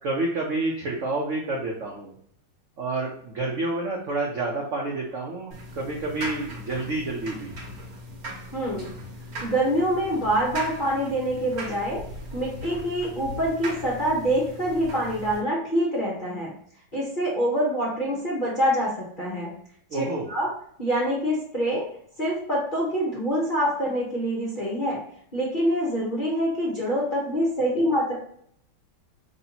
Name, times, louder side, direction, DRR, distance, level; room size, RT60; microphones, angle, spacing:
voice 1, 0.0-2.1 2.8-7.6 19.9-20.3, right 2 dB, 70° right, -1 dB, 0.7 m, -29 dB
sound 1, 5.5-15.4, equal, 50° right, 1.5 m, -39 dB
voice 2, 8.5-8.9 9.4-12.0 12.3-16.5 16.9-19.5 19.9-20.5 20.8-21.9 22.2-25.0 25.3-28.2, equal, 40° left, -5 dB, 0.8 m, -25 dB
5.5 x 3.3 x 2.8 m, 0.64 s
omnidirectional pair, 2.2 m